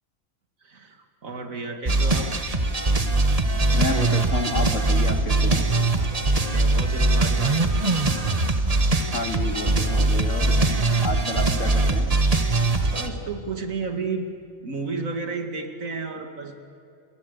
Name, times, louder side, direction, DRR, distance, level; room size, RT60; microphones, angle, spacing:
voice 1, 0.6-2.3 5.9-8.0 12.9-14.3 14.6-16.6, right 4 dB, 85° right, 5 dB, 2.5 m, -33 dB
sound 1, 1.9-13.1, right 2 dB, 30° right, 1.5 m, -21 dB
voice 2, 3.7-5.6 9.1-10.5 11.0-12.1, left 2 dB, 65° left, 4 dB, 2.7 m, -30 dB
29.5 x 21.5 x 8.2 m, 2.5 s
omnidirectional pair, 1.4 m